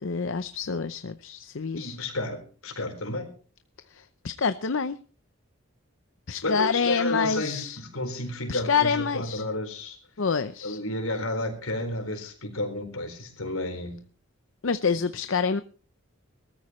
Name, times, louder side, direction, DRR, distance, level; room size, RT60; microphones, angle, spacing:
voice 1, 0.0-2.0 3.9-5.0 6.3-7.8 8.5-9.4 10.2-10.8 14.6-15.6, left 5 dB, 65° left, 0.6 m, -27 dB
voice 2, 1.8-3.3 6.4-10.0 10.6-14.0, left 1 dB, 80° left, 4.3 m, -31 dB
21.5 x 14.0 x 3.1 m
head